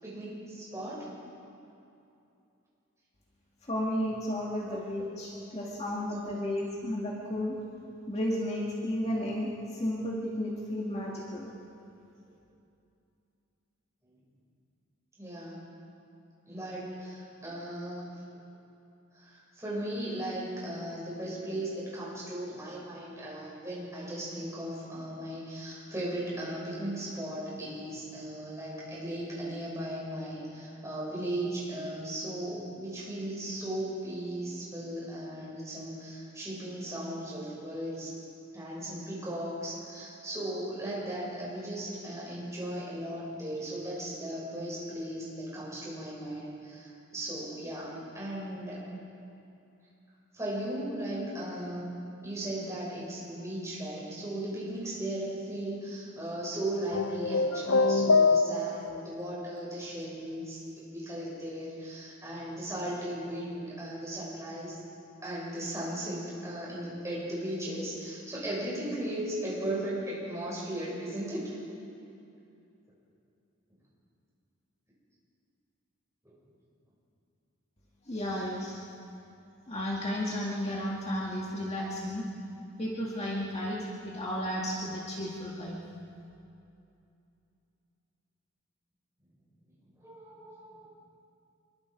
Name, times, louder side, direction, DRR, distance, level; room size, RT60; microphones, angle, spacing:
voice 1, 0.0-1.1 4.7-4.8 5.3-5.7 15.2-15.6 16.5-18.1 19.1-38.1 38.5-48.9 50.3-51.9 52.2-64.8 65.2-71.6 76.2-76.3 90.0-90.9, right 1 dB, 15° right, -6 dB, 6.9 m, -37 dB
voice 2, 3.7-7.6 8.1-11.5 78.1-78.8 79.7-82.2 82.8-85.8, left 1 dB, 30° left, -3 dB, 1.9 m, -33 dB
sound 1, 56.9-59.0, left 3 dB, 60° left, 0.6 m, -24 dB
25.0 x 22.0 x 5.2 m, 2.7 s
head